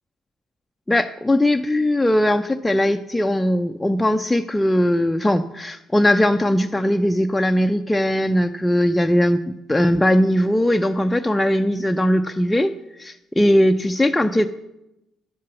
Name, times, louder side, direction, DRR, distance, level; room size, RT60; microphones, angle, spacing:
voice 1, 0.9-9.4 9.7-12.7 13.0-14.5, left 1 dB, 10° left, 6 dB, 0.5 m, -19 dB
11.0 x 7.4 x 5.9 m, 0.89 s
figure-of-eight pair, 45°, 0 cm